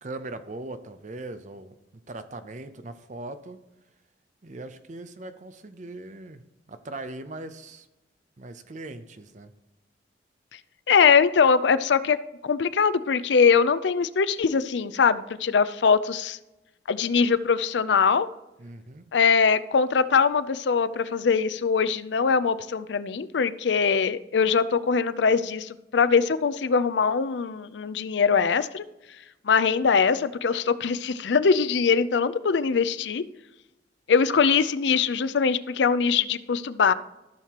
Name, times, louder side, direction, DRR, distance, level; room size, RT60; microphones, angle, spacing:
voice 1, 0.0-3.6 4.4-6.4 6.7-7.9 8.4-9.5 18.6-19.0, right 2 dB, 40° right, 10 dB, 0.6 m, -40 dB
voice 2, 10.9-12.2 12.4-16.4 16.9-18.3 19.1-28.8 29.4-33.2 34.1-36.9, left 5 dB, 75° left, 15 dB, 0.5 m, -22 dB
14.5 x 6.6 x 2.9 m, 0.98 s
head